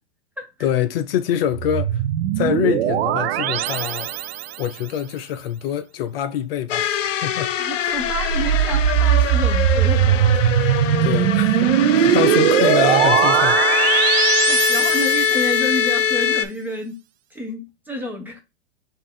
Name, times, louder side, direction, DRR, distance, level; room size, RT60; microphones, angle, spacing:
voice 1, 0.6-2.0 2.4-4.2 4.6-7.0 7.2-7.5 7.8-8.0 11.0-13.6, left 10 dB, 50° left, 0.6 m, -25 dB
sound 1, 1.5-4.7 8.0-15.7, right 11 dB, 60° right, 0.5 m, -19 dB
sound 2, 6.7-16.4, left 9 dB, 85° left, 0.7 m, -22 dB
voice 2, 7.6-10.5 14.5-17.0 17.3-18.4, equal, 5° right, 0.5 m, -29 dB
5.4 x 2.6 x 3.5 m
hypercardioid pair, 145°, 37 cm